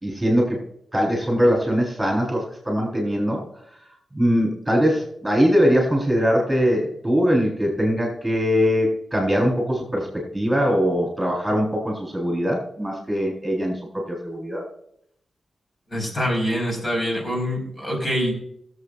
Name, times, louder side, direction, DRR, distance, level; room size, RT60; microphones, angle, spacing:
voice 1, 0.0-0.6 0.9-3.4 4.1-13.8 14.1-14.6, equal, 10° right, -1 dB, 3.9 m, -21 dB
voice 2, 15.9-18.3, equal, 30° left, 0 dB, 4.5 m, -25 dB
22.5 x 7.6 x 2.5 m, 0.70 s
wide cardioid pair, 100°, 0 cm